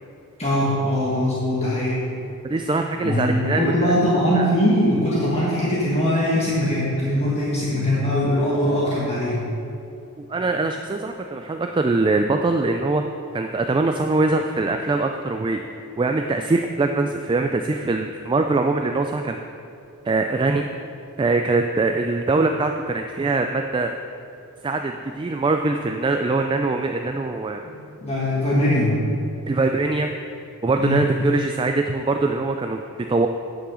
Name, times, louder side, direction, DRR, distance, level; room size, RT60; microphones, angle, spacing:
voice 1, 0.4-2.0 3.0-9.5 27.6-29.1 30.8-31.0, left 1 dB, 30° left, -7 dB, 1.6 m, -21 dB
voice 2, 2.4-3.9 4.4-4.5 10.3-13.0 13.3-15.6 16.0-19.4 20.0-20.7 21.2-23.9 24.6-27.6 29.5-30.1 30.6-33.3, right 3 dB, 20° right, 5 dB, 0.3 m, -22 dB
9.9 x 6.0 x 6.3 m, 2.6 s
head